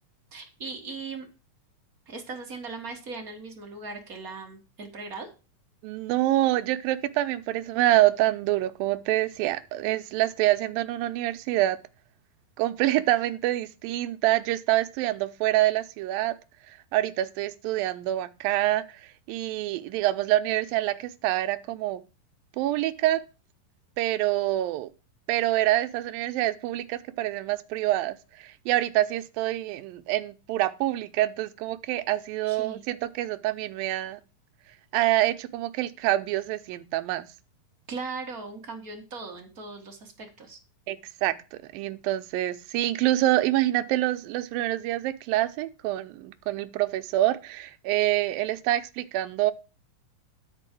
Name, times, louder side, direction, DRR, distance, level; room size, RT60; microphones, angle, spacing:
voice 1, 0.3-1.3 2.1-5.3 32.4-32.8 37.9-40.6, right 4 dB, 35° right, 1 dB, 1.6 m, -38 dB
voice 2, 5.8-11.8 12.6-16.4 16.9-18.8 19.3-22.0 22.6-23.2 24.0-24.9 25.3-34.2 34.9-37.3 40.9-49.5, right 15 dB, 85° right, 10 dB, 2.4 m, -26 dB
10.5 x 4.6 x 7.5 m, 0.32 s
omnidirectional pair, 4.1 m